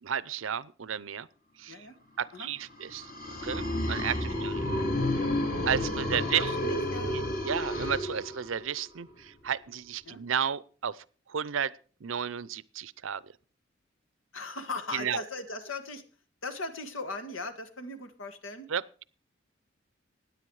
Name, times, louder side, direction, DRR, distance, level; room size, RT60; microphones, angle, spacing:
voice 1, 0.0-1.3 1.6-1.9 2.2-3.1 3.4-4.6 5.2-5.3 5.7-6.5 7.1-11.7 12.0-13.2 14.9-15.2 18.7-19.0, right 8 dB, 80° right, 0.6 m, -33 dB
sound 1, 2.8-8.7, left 1 dB, 45° left, 2.6 m, -31 dB
voice 2, 6.1-7.1 10.1-10.2 14.3-16.0 16.4-18.7, left 3 dB, 85° left, 1.8 m, -39 dB
16.5 x 10.0 x 4.8 m
head